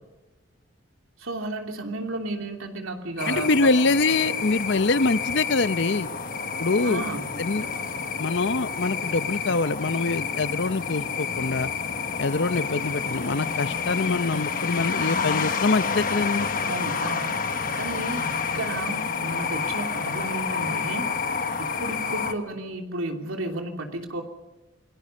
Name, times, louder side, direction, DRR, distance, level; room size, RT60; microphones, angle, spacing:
voice 1, 1.2-3.5 6.8-7.3 16.6-17.4 17.7-18.3 18.5-21.1 21.6-24.2, right 2 dB, 90° right, 4 dB, 3.0 m, -32 dB
sound 1, 3.2-22.3, left 5 dB, 40° left, 1.4 m, -29 dB
voice 2, 3.3-6.1 6.6-7.0 7.4-7.7 8.2-11.7 12.2-16.5, left 3 dB, 60° left, 15 dB, 0.7 m, -24 dB
29.0 x 19.0 x 5.5 m, 1.1 s
head